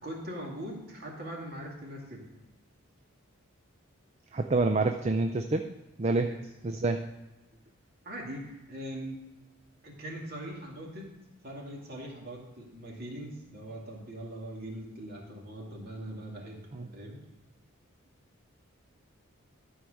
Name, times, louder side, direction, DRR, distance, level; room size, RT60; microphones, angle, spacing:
voice 1, 0.0-2.3 6.2-6.4 8.0-9.2 9.8-11.2 11.4-16.7 16.9-17.2, right 1 dB, 45° right, -2 dB, 2.4 m, -41 dB
voice 2, 4.3-6.4 6.6-7.1 16.7-16.9, right 3 dB, 30° right, 6 dB, 0.4 m, -28 dB
12.5 x 4.7 x 6.4 m, 1.1 s
head